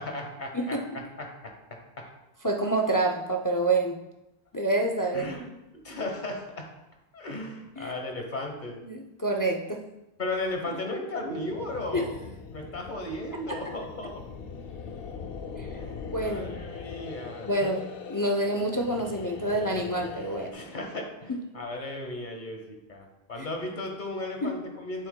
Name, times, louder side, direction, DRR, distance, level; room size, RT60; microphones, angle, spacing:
voice 1, 0.0-2.1 5.1-6.7 7.1-8.8 10.2-12.1 12.5-14.1 15.7-17.7 20.5-25.1, left 2 dB, 50° left, 2 dB, 1.2 m, -36 dB
voice 2, 2.4-4.0 4.5-5.3 7.8-7.9 8.8-9.8 10.7-10.8 11.9-12.0 13.5-13.6 15.6-15.7 16.1-16.6 17.5-17.8 18.1-20.5 24.4-24.6, right 2 dB, 30° left, 2 dB, 0.4 m, -27 dB
sound 1, 11.2-20.5, left 5 dB, 65° left, 0.8 m, -41 dB
7.8 x 7.7 x 2.2 m, 0.92 s
omnidirectional pair, 1.1 m